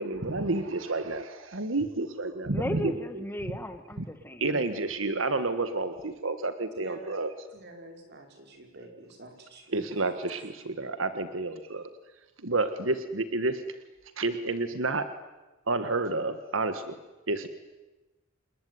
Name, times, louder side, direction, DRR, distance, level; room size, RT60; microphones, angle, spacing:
voice 1, 0.0-2.9 4.4-7.3 9.7-11.9 12.4-13.6 14.2-15.0 15.7-16.9 17.3-17.5, right 3 dB, 85° right, 10 dB, 1.6 m, -30 dB
voice 2, 2.5-4.6, equal, 10° left, 9 dB, 1.7 m, -35 dB
voice 3, 6.8-7.2 7.5-9.7, right 2 dB, 60° right, 4 dB, 5.3 m, -47 dB
28.5 x 20.5 x 9.6 m, 1.1 s
head